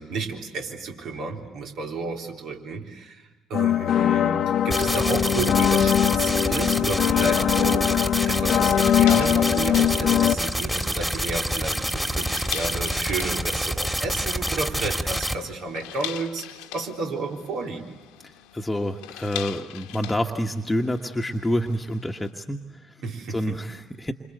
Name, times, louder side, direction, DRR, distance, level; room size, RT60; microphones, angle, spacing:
voice 1, 0.0-16.5 16.7-17.9 23.0-23.6, right 3 dB, 60° right, 2 dB, 3.7 m, -32 dB
sound 1, 3.5-10.3, left 10 dB, 55° left, 1.0 m, -21 dB
sound 2, 4.7-15.4, equal, 5° right, 2.7 m, -27 dB
sound 3, 8.7-22.3, left 13 dB, 75° left, 1.3 m, -41 dB
voice 2, 18.5-22.9 23.3-24.1, equal, 10° left, 2 dB, 1.6 m, -28 dB
28.5 x 26.0 x 8.1 m, 1.1 s
hypercardioid pair, 55°, 0 cm